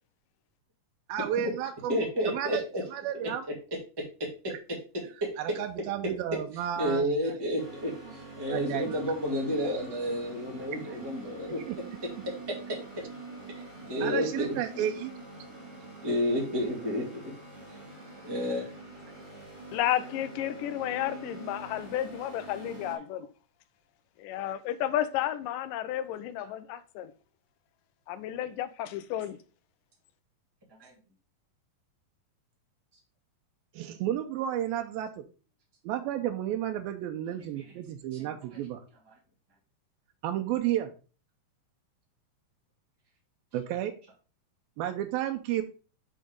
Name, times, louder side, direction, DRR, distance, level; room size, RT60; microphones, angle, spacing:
voice 1, 1.1-2.6 2.9-3.4 5.4-7.3 8.5-9.1 11.7-11.8 14.0-15.1 33.7-35.2 35.8-38.8 40.2-40.9 43.5-43.9 44.8-45.6, right 11 dB, 90° right, 2.5 m, -32 dB
voice 2, 1.9-2.8 4.2-4.5 5.2-5.3 6.8-11.6 13.9-14.5 14.7-14.9 16.0-17.1 18.2-18.7 30.8-30.9 38.1-38.3, equal, 10° right, 1.2 m, -30 dB
sound 1, 7.6-23.0, right 3 dB, 45° right, 3.2 m, -45 dB
voice 3, 19.7-23.3 24.2-27.1 28.1-29.4, left 12 dB, 80° left, 2.2 m, -32 dB
7.5 x 3.9 x 4.9 m
omnidirectional pair, 4.1 m